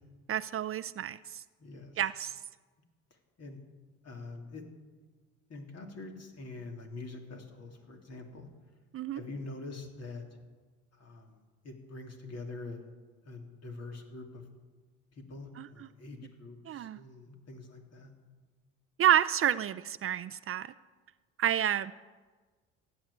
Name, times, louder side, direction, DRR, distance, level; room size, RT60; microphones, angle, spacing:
voice 1, 0.3-1.4 2.0-2.4 8.9-9.2 15.6-15.9 16.7-17.0 19.0-20.7 21.4-21.9, right 10 dB, 40° right, 14 dB, 0.5 m, -29 dB
voice 2, 1.6-2.0 3.4-3.6 4.0-4.6 5.5-8.5 9.1-10.2 10.9-11.4 11.6-12.8 13.2-14.4 15.2-18.1, left 3 dB, 50° left, 3 dB, 3.2 m, -45 dB
15.0 x 9.6 x 8.5 m, 1.4 s
supercardioid pair, 80°, 33 cm